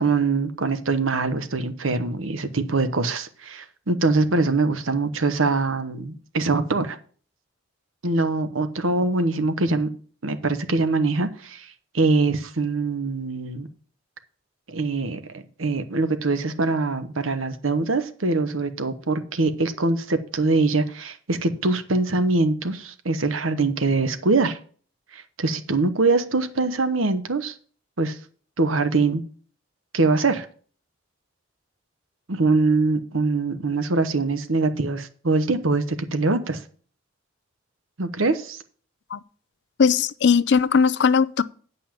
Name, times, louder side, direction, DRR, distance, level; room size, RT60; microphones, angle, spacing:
voice 1, 0.0-7.0 8.0-9.9 10.2-13.7 14.7-24.6 25.1-27.6 28.0-28.2 28.6-29.2 29.9-30.5 32.3-36.6 38.0-38.6, right 3 dB, 80° right, 1.1 m, -23 dB
voice 2, 39.8-41.4, left 6 dB, 55° left, 0.4 m, -19 dB
9.1 x 5.6 x 7.1 m
head